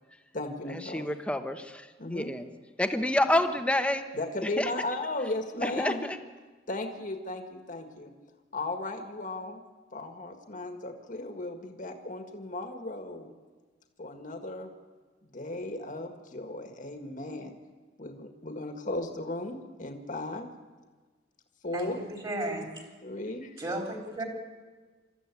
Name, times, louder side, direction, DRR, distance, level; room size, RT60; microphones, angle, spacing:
voice 1, 0.3-1.1 2.0-2.3 4.1-6.0 6.7-8.1 8.5-9.6 9.9-13.3 14.0-14.7 15.3-17.6 18.0-20.5 21.6-22.0 23.0-23.6, left 2 dB, 45° left, 5 dB, 1.8 m, -36 dB
voice 2, 0.9-2.4 2.8-4.0 4.6-4.7 5.6-6.2, left 1 dB, 5° left, 7 dB, 1.1 m, -28 dB
voice 3, 21.7-22.8 23.6-24.2, right 1 dB, 30° right, 1 dB, 3.7 m, -34 dB
25.5 x 13.5 x 8.4 m, 1.4 s
head